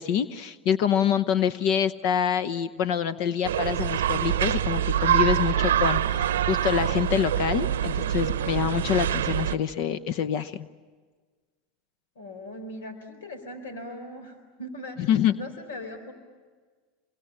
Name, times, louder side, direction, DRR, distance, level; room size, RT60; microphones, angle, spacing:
voice 1, 0.0-10.7 15.1-15.3, left 8 dB, 60° left, 14 dB, 0.8 m, -26 dB
sound 1, 3.4-9.6, right 10 dB, 85° right, 0.7 m, -25 dB
voice 2, 12.2-16.1, left 1 dB, 85° left, 8 dB, 4.3 m, -40 dB
26.5 x 24.0 x 8.8 m, 1.5 s
hypercardioid pair, 105°, 0 cm